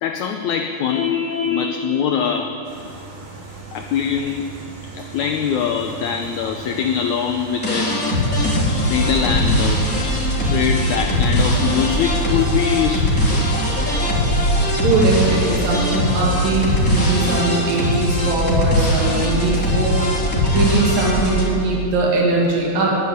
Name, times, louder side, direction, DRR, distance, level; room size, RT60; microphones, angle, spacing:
voice 1, 0.0-2.6 3.7-4.4 4.9-8.0 8.9-9.8 10.4-13.5, left 7 dB, 80° left, 5 dB, 1.7 m, -23 dB
Vehicle horn car horn honking, 0.9-1.7, left 7 dB, 40° left, 3.1 m, -23 dB
sound 1, 2.6-17.9, right 3 dB, 50° right, 4.0 m, -37 dB
sound 2, 7.6-21.4, equal, 5° left, 3.2 m, -20 dB
voice 2, 14.8-20.0 20.3-23.0, right 2 dB, 75° right, -3 dB, 4.1 m, -20 dB
11.0 x 11.0 x 9.6 m, 2.8 s
omnidirectional pair, 4.0 m